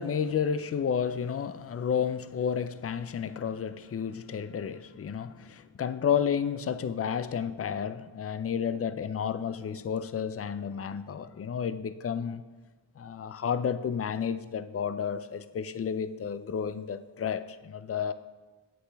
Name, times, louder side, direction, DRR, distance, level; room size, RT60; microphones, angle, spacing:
voice 1, 0.0-12.4 13.0-18.1, left 7 dB, 35° left, 13 dB, 0.4 m, -31 dB
8.0 x 7.7 x 3.4 m, 1.3 s
cardioid pair, 40°, 46 cm